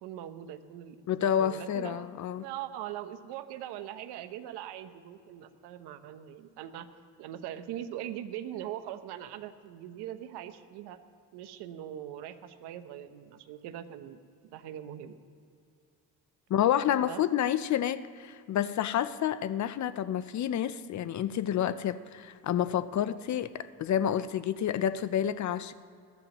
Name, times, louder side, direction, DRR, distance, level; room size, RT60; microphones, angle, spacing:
voice 1, 0.0-6.9 7.2-11.0 11.3-15.2 17.0-17.2, right 11 dB, 85° right, 9 dB, 1.0 m, -41 dB
voice 2, 1.1-2.5 16.5-25.7, left 10 dB, 45° left, 14 dB, 0.6 m, -29 dB
21.0 x 14.0 x 3.0 m, 2.4 s
cardioid pair, 100°, 39 cm